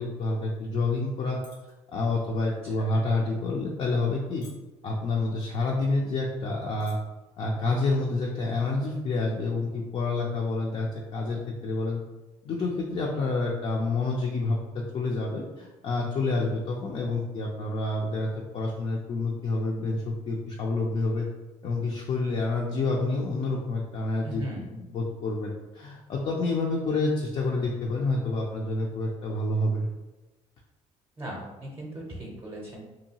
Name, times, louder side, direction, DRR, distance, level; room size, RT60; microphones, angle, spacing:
voice 1, 0.0-1.4 1.9-4.4 4.8-7.0 7.4-12.0 12.4-18.3 18.5-21.3 21.6-24.4 24.9-29.9, left 3 dB, 45° left, -2 dB, 0.4 m, -28 dB
sound 1, 1.4-1.7 2.1-2.4 3.0-3.2 3.9-4.2 4.4-4.9 5.7-5.8 6.0-6.1 6.6-6.9 7.3-7.6, left 4 dB, 85° left, 0.7 m, -53 dB
voice 2, 24.2-24.7 31.2-32.8, equal, 20° right, -3 dB, 0.6 m, -38 dB
2.7 x 2.2 x 2.8 m, 1.1 s
cardioid pair, 95°, 13 cm